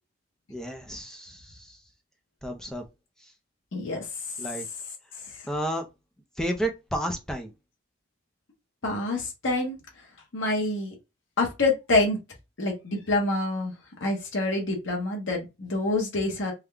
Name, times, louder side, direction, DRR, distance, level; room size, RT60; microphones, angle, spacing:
voice 1, 0.5-1.8 2.4-2.8 4.4-4.7 5.5-5.9 6.4-7.5, right 1 dB, 5° left, 0.5 m, -31 dB
voice 2, 3.7-4.1 8.8-9.8 10.3-10.9 11.4-12.2 12.6-13.7 14.0-16.5, left 2 dB, 90° left, 1.0 m, -26 dB
3.6 x 2.2 x 3.4 m
head